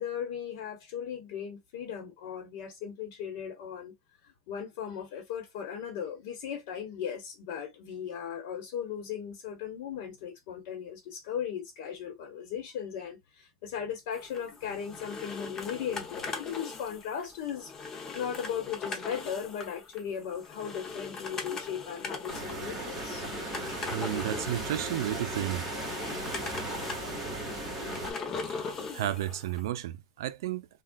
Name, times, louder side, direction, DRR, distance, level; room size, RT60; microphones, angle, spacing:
voice 1, 0.0-3.9 4.5-23.2, left 8 dB, 60° left, 1.1 m, -37 dB
sound 1, 14.1-29.7, left 4 dB, 25° left, 0.7 m, -40 dB
sound 2, 22.3-28.1, right 2 dB, 15° right, 1.4 m, -37 dB
voice 2, 23.9-25.7 28.5-28.6 28.9-30.7, right 13 dB, 80° right, 0.5 m, -32 dB
3.6 x 2.3 x 2.2 m
supercardioid pair, 150°, 2 cm